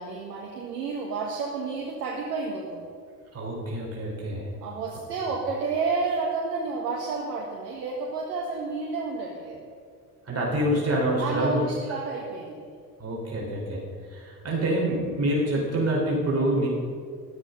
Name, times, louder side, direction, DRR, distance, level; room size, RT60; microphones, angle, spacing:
voice 1, 0.0-2.9 4.6-9.6 11.2-12.7 14.5-14.6, right 4 dB, 75° right, -1 dB, 1.8 m, -31 dB
voice 2, 3.3-4.5 10.3-11.6 13.0-13.8 14.1-16.7, right 1 dB, 30° right, -4 dB, 4.8 m, -26 dB
14.0 x 13.0 x 5.6 m, 2.1 s
figure-of-eight pair, 55°, 47 cm